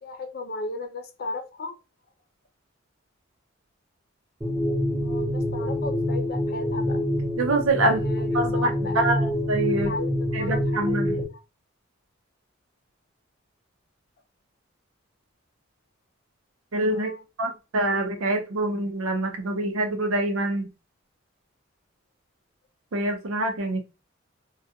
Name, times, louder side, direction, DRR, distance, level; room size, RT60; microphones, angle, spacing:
voice 1, 0.0-1.8 5.0-7.0 7.8-9.3 9.8-11.0 11.3-11.4 16.9-17.2, left 2 dB, 45° left, 0.5 m, -35 dB
sound 1, 4.4-11.2, left 1 dB, 10° right, 0.7 m, -26 dB
voice 2, 7.4-8.0 8.3-9.2 9.5-9.9 10.3-11.1 16.7-17.1 17.4-20.7 22.9-23.8, right 2 dB, 85° right, 0.6 m, -25 dB
2.3 x 2.2 x 2.7 m
head